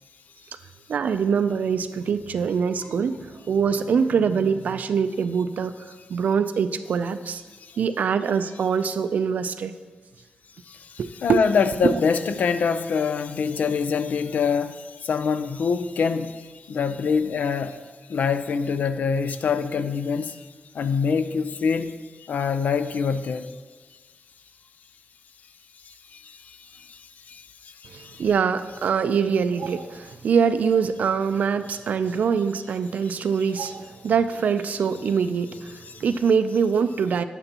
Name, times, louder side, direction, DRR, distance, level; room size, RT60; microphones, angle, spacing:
voice 1, 0.9-5.7 6.1-7.4 7.8-9.7 11.0-11.4 11.8-12.0 27.9-37.2, right 6 dB, 65° right, 11 dB, 0.4 m, -24 dB
voice 2, 10.6-17.8 18.1-20.5 20.7-23.5 25.9-28.2 35.9-36.0, left 5 dB, 65° left, 11 dB, 0.5 m, -25 dB
12.0 x 8.9 x 2.9 m, 1.4 s
wide cardioid pair, 175°, 3 cm